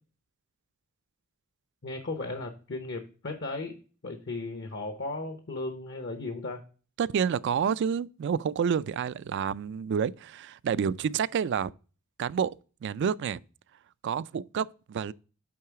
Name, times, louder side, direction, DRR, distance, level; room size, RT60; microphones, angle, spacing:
voice 1, 1.8-3.8 4.0-6.6, left 2 dB, 55° left, 0.8 m, -36 dB
voice 2, 7.0-11.7 12.2-12.5 12.8-13.4 14.0-15.1, right 7 dB, 55° right, 0.3 m, -29 dB
8.7 x 3.9 x 4.6 m
head